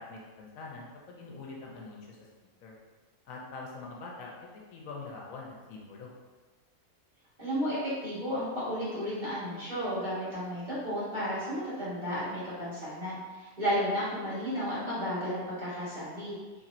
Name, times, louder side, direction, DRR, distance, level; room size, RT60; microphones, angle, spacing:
voice 1, 0.0-2.2 2.6-2.8 3.2-4.3 4.7-6.1, left 3 dB, 75° left, -2 dB, 1.0 m, -44 dB
voice 2, 7.4-16.3, equal, 35° right, -11 dB, 1.6 m, -33 dB
4.1 x 2.9 x 2.5 m, 1.4 s
omnidirectional pair, 1.5 m